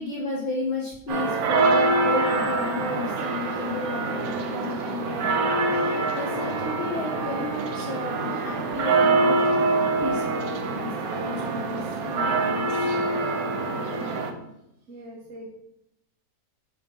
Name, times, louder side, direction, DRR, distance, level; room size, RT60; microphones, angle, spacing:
voice 1, 0.0-5.4 5.9-9.4 10.0-12.9, left 3 dB, 30° left, -9 dB, 1.8 m, -33 dB
sound 1, 1.1-14.3, right 3 dB, 80° right, 1.2 m, -25 dB
voice 2, 14.9-15.5, right 1 dB, 65° right, -1 dB, 1.3 m, -42 dB
6.8 x 3.2 x 5.2 m, 0.81 s
omnidirectional pair, 1.5 m